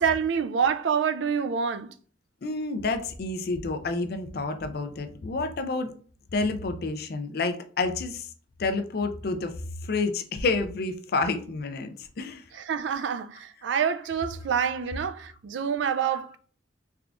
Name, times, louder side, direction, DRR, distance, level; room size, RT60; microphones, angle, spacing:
voice 1, 0.0-1.9 12.5-16.4, right 7 dB, 75° right, 0.4 m, -27 dB
voice 2, 2.4-5.9 6.3-8.3 8.6-9.5 9.8-12.4, left 3 dB, 55° left, 0.4 m, -29 dB
3.6 x 3.3 x 2.4 m
head